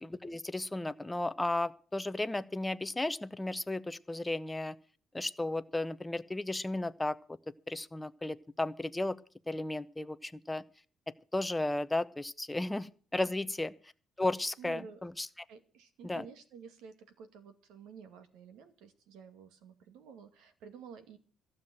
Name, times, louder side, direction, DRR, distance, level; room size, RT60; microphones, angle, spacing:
voice 1, 0.0-4.7 5.1-7.2 7.7-9.2 9.5-10.6 11.3-13.7 14.2-15.3 16.0-16.2, left 2 dB, 10° left, 13 dB, 0.6 m, -34 dB
voice 2, 14.6-15.0 15.5-21.2, right 6 dB, 90° right, 9 dB, 2.2 m, -51 dB
15.0 x 7.4 x 7.8 m, 0.41 s
cardioid pair, 170°, 0 cm